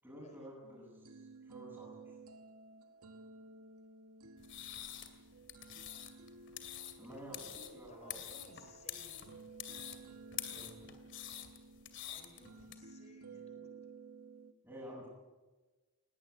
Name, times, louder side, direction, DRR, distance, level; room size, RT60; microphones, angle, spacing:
voice 1, 0.0-2.1 7.0-7.3 7.7-8.2 10.5-10.7 14.6-15.1, equal, 10° right, -9 dB, 7.6 m, -51 dB
sound 1, 0.6-14.5, right 4 dB, 90° right, 1.3 m, -55 dB
sound 2, 4.4-12.7, left 11 dB, 55° left, 2.6 m, -47 dB
voice 2, 7.0-9.5 12.1-13.8, left 2 dB, 30° left, 6 dB, 4.1 m, -60 dB
20.0 x 18.5 x 9.2 m, 1.2 s
head